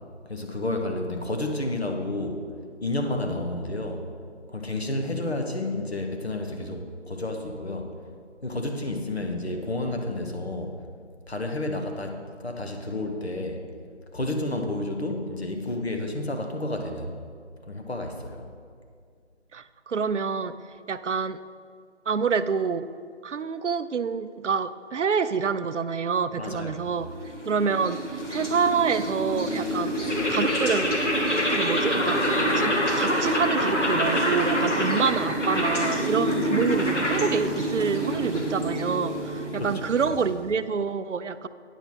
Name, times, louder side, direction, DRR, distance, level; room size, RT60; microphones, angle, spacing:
voice 1, 0.3-2.4 2.8-4.0 4.5-7.9 8.4-10.8 11.3-13.6 14.1-17.1 17.7-18.5 26.4-26.8 39.5-39.7, left 2 dB, 60° left, 3 dB, 1.1 m, -30 dB
voice 2, 19.5-20.6 20.9-21.4 22.1-22.9 23.2-27.1 27.5-28.0 28.3-30.0 30.3-31.0 31.5-41.5, right 5 dB, 75° right, 13 dB, 0.5 m, -27 dB
sound 1, 27.0-40.5, equal, 80° left, 2.2 m, -26 dB
9.1 x 5.4 x 6.1 m, 2.2 s
figure-of-eight pair, 175°, 36 cm